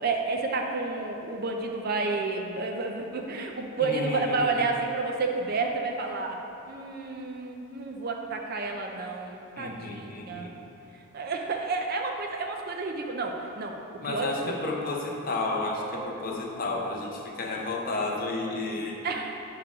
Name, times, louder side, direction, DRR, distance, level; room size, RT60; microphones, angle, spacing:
voice 1, 0.0-6.4 6.7-10.5 10.9-13.8 14.0-14.6 19.0-19.3, right 3 dB, 45° right, 2 dB, 0.5 m, -30 dB
voice 2, 3.8-4.5 9.6-10.6 14.0-19.0, left 2 dB, 40° left, 0 dB, 0.7 m, -32 dB
8.2 x 4.8 x 3.6 m, 2.8 s
head